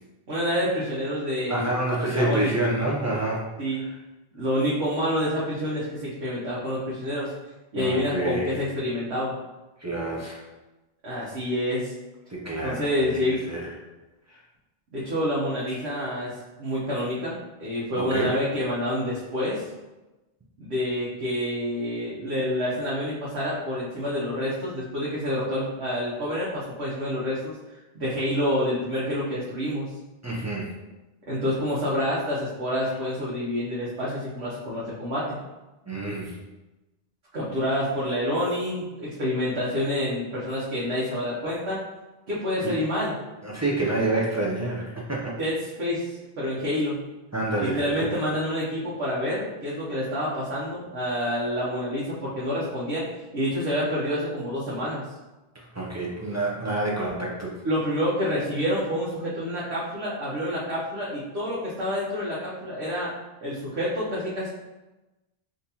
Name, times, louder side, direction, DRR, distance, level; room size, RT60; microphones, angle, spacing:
voice 1, 0.3-1.8 2.1-2.5 3.6-3.8 4.4-7.3 7.7-9.3 11.0-11.9 12.6-13.4 14.9-16.3 16.6-19.6 20.6-27.6 27.9-29.9 31.3-35.4 37.3-41.8 42.3-43.2 45.4-46.1 46.4-47.0 47.6-53.0 53.3-55.0 57.6-63.1 63.4-64.5, equal, 90° right, -8 dB, 1.1 m, -28 dB
voice 2, 1.5-3.4 7.8-8.5 9.8-10.4 12.3-13.2 13.5-13.6 15.7-15.8 18.0-18.3 30.2-30.7 35.9-36.3 42.6-42.7 43.4-45.3 47.3-48.1 55.7-57.6, right 2 dB, 20° right, -5 dB, 0.4 m, -27 dB
3.6 x 2.8 x 2.8 m, 1.1 s
omnidirectional pair, 1.1 m